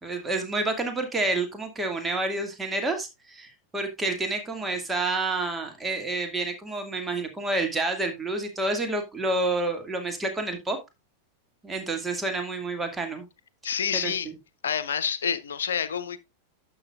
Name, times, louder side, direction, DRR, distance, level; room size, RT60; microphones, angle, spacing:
voice 1, 0.0-10.8 11.6-13.3 14.0-14.3, right 2 dB, 10° right, 2.1 m, -29 dB
voice 2, 13.6-14.3 14.6-16.2, left 7 dB, 65° left, 0.9 m, -28 dB
11.5 x 8.0 x 2.4 m
figure-of-eight pair, 90°, 0 cm